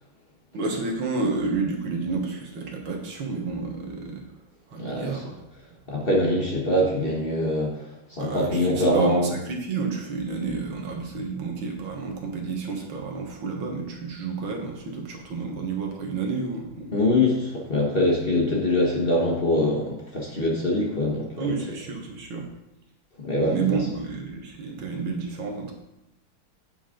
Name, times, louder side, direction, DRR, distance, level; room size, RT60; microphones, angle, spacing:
voice 1, 0.5-4.2 4.7-5.3 8.2-16.9 21.4-22.5 23.4-25.7, right 4 dB, 80° right, 1 dB, 2.1 m, -30 dB
voice 2, 4.8-5.2 5.9-9.3 16.9-21.6 23.2-23.8, left 1 dB, 35° left, -3 dB, 1.3 m, -24 dB
8.6 x 7.2 x 3.8 m, 0.89 s
omnidirectional pair, 2.2 m